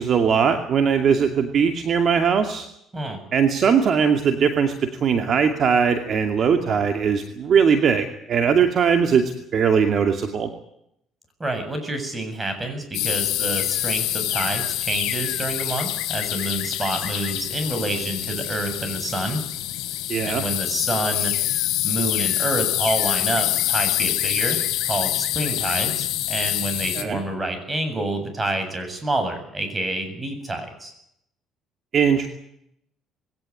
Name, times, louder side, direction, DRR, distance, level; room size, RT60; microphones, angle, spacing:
voice 1, 0.0-2.7 3.3-4.7 5.0-10.5 20.1-20.4 27.0-27.2 31.9-32.3, right 6 dB, 50° right, 6 dB, 2.5 m, -20 dB
voice 2, 11.4-19.4 20.2-21.3 21.8-24.6 24.9-30.9, right 2 dB, 20° right, 7 dB, 7.7 m, -28 dB
sound 1, 12.9-27.0, left 14 dB, 80° left, 3.8 m, -25 dB
21.5 x 17.5 x 9.8 m, 0.75 s
cardioid pair, 110°, 0 cm